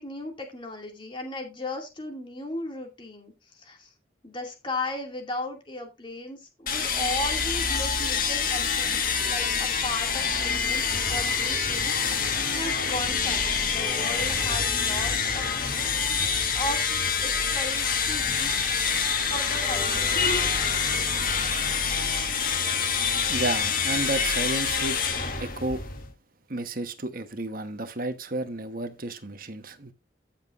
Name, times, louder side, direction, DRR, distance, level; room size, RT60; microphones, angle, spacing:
voice 1, 0.0-3.9 4.2-12.2 12.5-16.3 16.5-16.8 17.2-18.7 19.3-20.3, left 1 dB, 25° left, 2.4 m, -36 dB
sound 1, 6.7-26.1, left 6 dB, 45° left, 1.6 m, -26 dB
voice 2, 23.3-25.0 25.4-25.8 26.5-29.9, right 2 dB, 50° right, 1.2 m, -32 dB
14.5 x 7.3 x 2.6 m
head